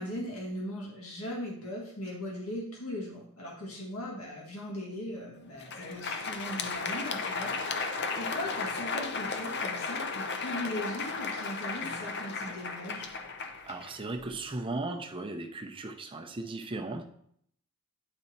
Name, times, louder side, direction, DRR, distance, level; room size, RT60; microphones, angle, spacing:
voice 1, 0.0-13.1, left 1 dB, 75° left, -3 dB, 1.8 m, -39 dB
Crowd, 5.5-14.4, left 4 dB, 50° left, 0.7 m, -35 dB
voice 2, 13.7-17.0, right 2 dB, 25° right, 5 dB, 0.6 m, -36 dB
9.8 x 4.2 x 4.3 m, 0.69 s
head